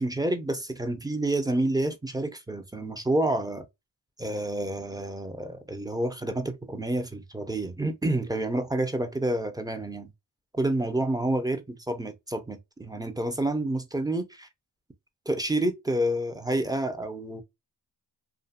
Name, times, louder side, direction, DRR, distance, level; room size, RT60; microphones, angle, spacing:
voice 1, 0.0-3.7 4.2-10.1 10.5-14.5 15.3-17.4, right 1 dB, 10° right, 0.7 m, -29 dB
2.7 x 2.5 x 2.5 m
cardioid pair, 50°, 46 cm